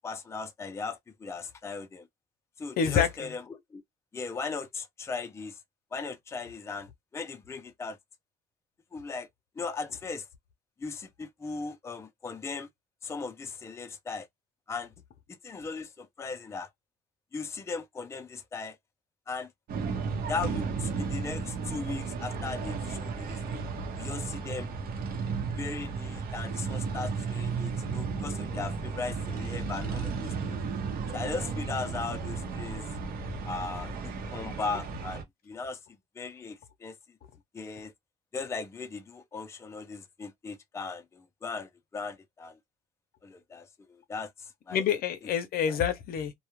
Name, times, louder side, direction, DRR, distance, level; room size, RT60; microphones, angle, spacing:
voice 1, 0.0-2.1 2.6-3.8 4.1-5.6 5.9-8.0 8.9-9.3 9.6-10.3 10.8-12.7 13.0-14.3 14.7-14.9 15.3-16.7 17.3-18.8 19.3-19.5 20.3-23.6 24.0-24.7 25.5-30.6 31.1-32.9 33.5-35.8 36.2-37.0 37.5-37.9 38.3-42.6 43.2-44.8 45.7-45.8, left 4 dB, 15° left, 0.4 m, -38 dB
voice 2, 2.8-3.3 44.7-46.3, left 8 dB, 65° left, 0.6 m, -27 dB
sound 1, 19.7-35.2, right 5 dB, 60° right, 0.8 m, -34 dB
2.3 x 2.1 x 3.0 m
cardioid pair, 110°, 17 cm